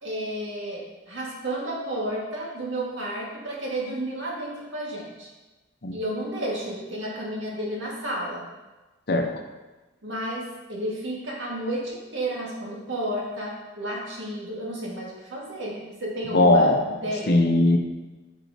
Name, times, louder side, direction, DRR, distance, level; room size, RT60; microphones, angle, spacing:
voice 1, 0.0-5.3 5.9-8.5 10.0-17.4, right 1 dB, 75° right, -3 dB, 1.9 m, -32 dB
voice 2, 16.3-16.8 17.3-17.8, left 2 dB, 55° left, 4 dB, 0.8 m, -18 dB
9.1 x 5.4 x 2.8 m, 1.2 s
head